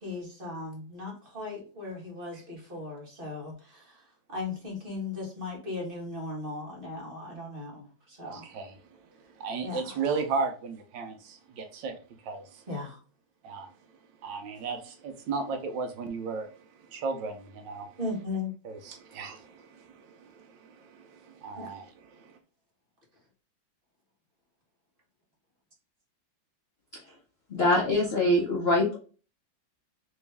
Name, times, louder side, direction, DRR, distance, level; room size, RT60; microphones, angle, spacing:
voice 1, 0.0-4.0 4.3-8.5 9.6-9.9 12.7-13.0 18.0-18.5 21.6-21.7, left 3 dB, 30° right, 1.5 m, -37 dB
voice 2, 8.2-8.8 9.4-11.9 12.2-12.6 13.4-13.7 14.2-16.5 16.9-17.9 18.6-22.4, right 4 dB, 75° right, 1.4 m, -35 dB
voice 3, 27.5-29.0, left 1 dB, 55° left, 0.6 m, -23 dB
3.5 x 3.1 x 3.3 m
omnidirectional pair, 2.1 m